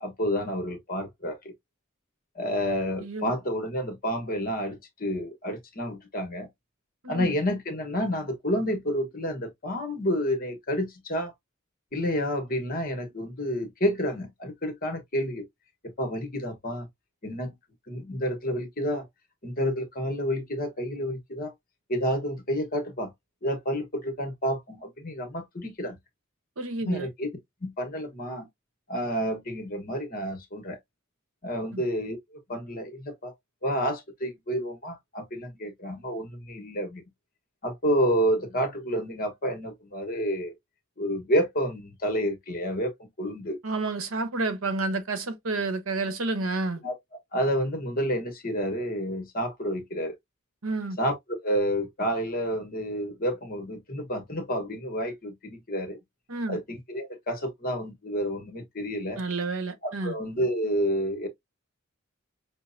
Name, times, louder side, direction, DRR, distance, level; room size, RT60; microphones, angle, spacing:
voice 1, 0.0-1.5 2.3-6.5 7.1-11.3 11.9-15.4 15.8-16.9 17.2-17.5 17.9-19.0 19.4-21.5 21.9-23.1 23.4-26.0 26.8-27.3 27.6-28.5 28.9-30.8 31.4-33.3 33.6-37.0 37.6-40.5 41.0-43.6 46.8-46.9 47.3-50.2 51.0-51.2 51.4-56.0 56.5-59.2 59.8-61.3, equal, 45° left, 1.2 m, -29 dB
voice 2, 3.0-3.3 7.0-7.3 26.6-27.1 31.7-31.8 43.6-46.8 50.6-51.0 56.3-56.6 59.2-60.2, right 3 dB, 90° right, 1.0 m, -30 dB
6.1 x 2.1 x 2.6 m
head